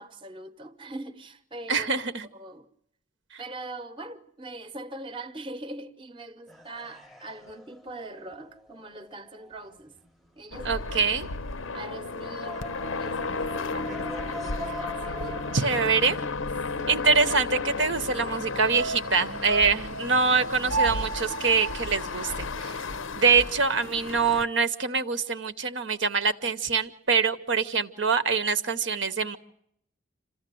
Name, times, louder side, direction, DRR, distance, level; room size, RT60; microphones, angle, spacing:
voice 1, 0.0-1.9 2.3-2.7 3.4-9.9 10.4-10.8 11.7-12.7 13.0-15.4 16.7-17.0, right 2 dB, 25° right, 0.9 m, -42 dB
voice 2, 1.7-2.3 10.6-11.3 15.2-16.2 16.9-22.8 23.1-29.4, right 5 dB, 60° right, 0.9 m, -25 dB
sound 1, 6.5-10.3 11.2-15.6, equal, ahead, 0.8 m, -42 dB
sound 2, 10.5-24.5, left 3 dB, 80° left, 0.8 m, -34 dB
sound 3, 18.7-23.1 23.4-23.5, right 3 dB, 90° right, 0.8 m, -33 dB
27.0 x 15.0 x 7.7 m
head